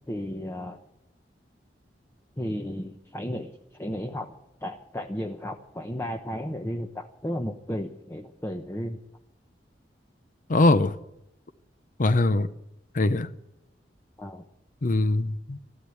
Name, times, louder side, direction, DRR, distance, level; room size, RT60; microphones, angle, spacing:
voice 1, 0.1-0.8 2.4-4.4 4.6-9.0 14.2-14.4, equal, 15° left, 0.8 m, -34 dB
voice 2, 10.5-10.9 12.0-12.5 12.9-13.3 14.8-15.6, left 2 dB, 50° left, 0.7 m, -22 dB
13.0 x 12.5 x 8.5 m
head